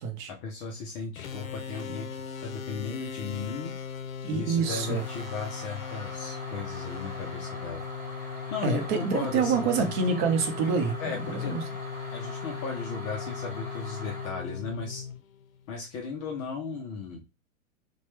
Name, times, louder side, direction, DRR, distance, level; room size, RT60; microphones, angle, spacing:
voice 1, 0.3-3.7 4.3-7.8 8.5-9.9 11.0-11.6 12.1-15.1 15.7-17.2, left 4 dB, 25° left, 0.4 m, -36 dB
sound 1, 1.2-15.7, left 7 dB, 85° left, 0.6 m, -38 dB
voice 2, 4.2-5.0 8.6-11.6, right 5 dB, 40° right, 0.7 m, -27 dB
sound 2, 4.6-14.3, right 1 dB, 20° right, 1.7 m, -43 dB
2.8 x 2.2 x 3.1 m
hypercardioid pair, 120°, 40 cm